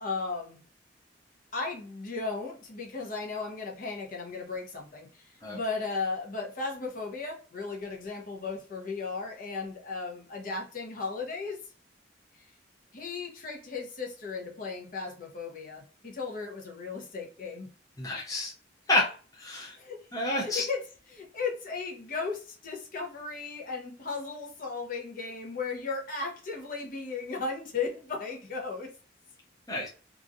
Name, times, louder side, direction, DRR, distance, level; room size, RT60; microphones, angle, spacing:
voice 1, 0.0-0.6 1.5-11.6 12.3-12.5 12.9-17.7 19.8-20.1 20.3-28.9, left 4 dB, 45° left, 1 dB, 0.8 m, -36 dB
voice 2, 18.0-18.5 18.9-19.1 19.4-19.7 20.1-20.6 29.7-29.9, left 2 dB, 20° left, -3 dB, 0.6 m, -28 dB
2.9 x 2.5 x 2.5 m, 0.37 s
head